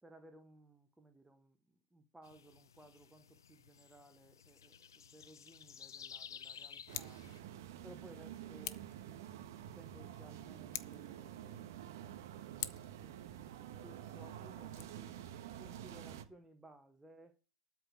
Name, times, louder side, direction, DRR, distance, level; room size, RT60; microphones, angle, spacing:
voice 1, 0.0-7.3 7.8-11.7 12.5-15.1 15.6-17.4, right 1 dB, 5° right, 0.9 m, -60 dB
sound 1, 2.2-7.4, left 8 dB, 85° left, 0.5 m, -54 dB
Scissors, 6.8-7.2 8.6-9.0 10.6-11.1 12.6-13.0 14.6-14.8, left 13 dB, 55° left, 0.9 m, -44 dB
sound 2, 6.9-16.2, right 11 dB, 55° right, 1.3 m, -49 dB
12.5 x 4.6 x 8.1 m
hypercardioid pair, 135°, 2 cm